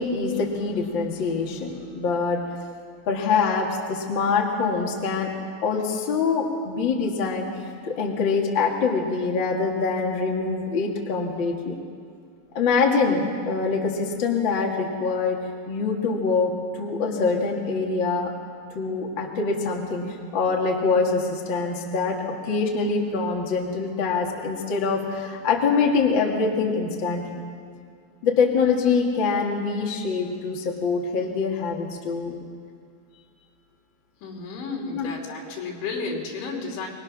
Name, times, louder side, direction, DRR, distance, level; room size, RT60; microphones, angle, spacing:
voice 1, 0.0-2.4 3.1-5.3 5.6-7.5 7.8-11.7 12.5-15.4 15.7-18.3 18.7-20.1 20.3-27.4 28.2-32.4 34.9-35.1, left 4 dB, 40° left, 0 dB, 1.9 m, -24 dB
voice 2, 34.2-36.9, left 4 dB, 80° left, 0 dB, 5.5 m, -32 dB
25.5 x 22.0 x 6.3 m, 2.2 s
omnidirectional pair, 5.2 m